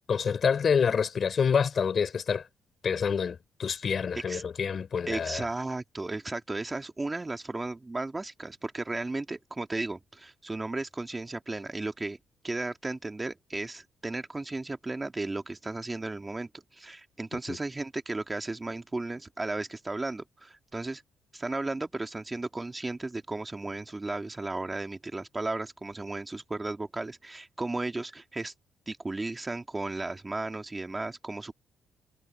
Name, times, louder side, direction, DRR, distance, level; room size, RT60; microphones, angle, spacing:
voice 1, 0.1-2.4 2.8-5.4 17.5-17.6, left 6 dB, 50° left, 4.2 m, -27 dB
voice 2, 5.1-12.2 12.4-21.0 21.3-28.5 28.9-31.5, right 2 dB, 20° right, 1.9 m, -35 dB
cardioid pair, 90°, 0 cm